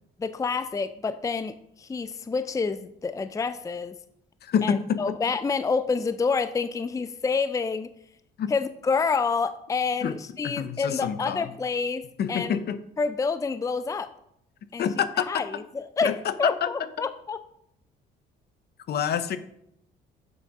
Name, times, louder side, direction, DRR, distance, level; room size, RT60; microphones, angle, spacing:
voice 1, 0.2-4.0 4.6-7.9 8.5-12.6 13.0-14.1 14.7-14.8 15.3-15.5 15.7-16.1 16.4-17.4, left 4 dB, 15° left, 12 dB, 0.5 m, -28 dB
voice 2, 4.4-5.1 8.4-8.5 10.0-10.2 10.4-11.5 12.2-12.8 14.8-15.4 16.0-16.9 18.9-19.4, left 8 dB, 60° left, 12 dB, 0.8 m, -27 dB
7.6 x 5.8 x 5.3 m, 0.75 s
supercardioid pair, 80°, 19 cm